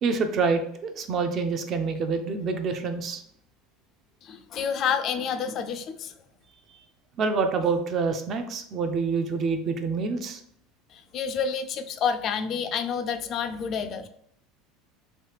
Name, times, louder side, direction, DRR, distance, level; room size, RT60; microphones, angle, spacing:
voice 1, 0.0-3.2 7.2-10.4, right 4 dB, 45° right, 7 dB, 0.4 m, -27 dB
voice 2, 4.2-6.1 10.9-14.1, left 7 dB, 45° left, 9 dB, 0.3 m, -29 dB
3.1 x 2.4 x 3.2 m, 0.68 s
supercardioid pair, 115°, 0 cm